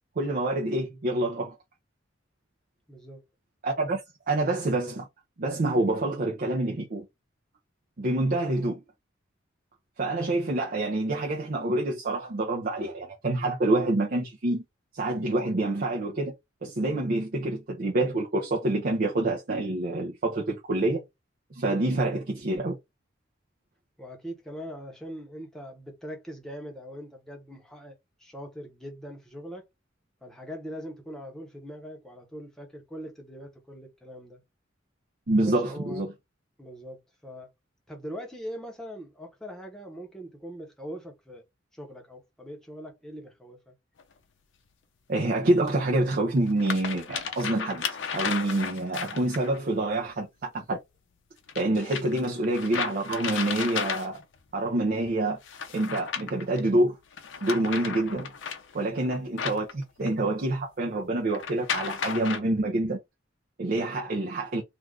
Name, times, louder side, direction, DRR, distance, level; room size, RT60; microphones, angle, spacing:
voice 1, 0.2-1.6 3.6-4.0 4.3-5.1 5.4-7.1 8.0-8.8 10.0-14.6 14.9-16.3 16.6-21.0 21.5-22.8 35.3-36.1 45.1-47.9 48.1-50.8 51.6-54.2 54.5-55.4 55.7-57.0 57.4-58.3 58.7-63.0 63.6-64.6, right 2 dB, 50° right, 0.5 m, -27 dB
voice 2, 2.9-3.2 24.0-29.7 30.2-34.4 35.4-36.0 36.6-37.5 37.9-41.4 41.7-43.7 58.8-59.1 63.8-64.0, equal, 5° left, 0.8 m, -42 dB
sound 1, 44.0-44.1 45.7-45.8 46.4-49.6 51.5-54.4 55.4-56.6 57.1-60.3 61.3-62.4, left 6 dB, 70° left, 0.5 m, -34 dB
2.5 x 2.3 x 3.3 m
head